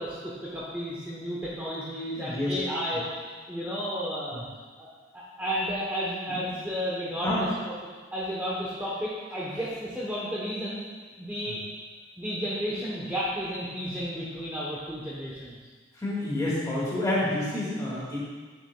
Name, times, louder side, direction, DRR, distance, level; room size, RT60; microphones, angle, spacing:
voice 1, 0.0-3.2 3.5-4.4 4.8-4.9 5.1-7.5 8.1-10.8 11.2-11.6 12.2-15.6, equal, 10° right, -8 dB, 0.9 m, -32 dB
voice 2, 2.1-2.6 4.3-4.4 6.3-6.4 7.2-7.5 11.5-11.6 15.9-18.2, left 1 dB, 20° left, -7 dB, 2.0 m, -29 dB
9.8 x 6.7 x 2.3 m, 1.4 s
head